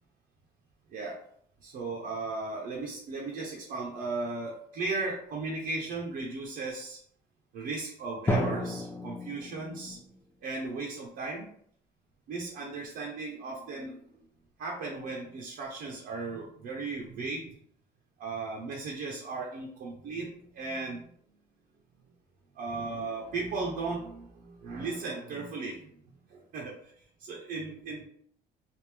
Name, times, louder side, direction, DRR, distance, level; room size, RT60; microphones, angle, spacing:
voice 1, 1.6-7.0 7.5-10.0 10.4-11.5 12.3-14.2 14.6-17.5 18.2-21.1 22.5-25.9 26.3-26.9 27.3-28.0, right 3 dB, 70° right, -3 dB, 0.8 m, -36 dB
Drum, 8.3-10.2, left 1 dB, 10° left, 0.5 m, -32 dB
3.4 x 2.5 x 3.4 m, 0.64 s
cardioid pair, 110°, 17 cm